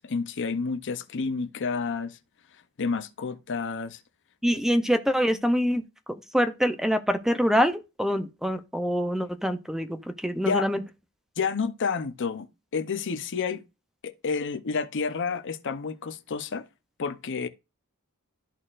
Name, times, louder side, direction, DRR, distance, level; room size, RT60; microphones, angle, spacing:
voice 1, 0.0-2.2 2.8-4.0 10.4-10.7 11.4-13.6 14.0-16.6 17.0-17.5, left 5 dB, 55° left, 0.7 m, -30 dB
voice 2, 4.4-10.8, equal, ahead, 0.5 m, -25 dB
13.0 x 4.3 x 2.5 m
head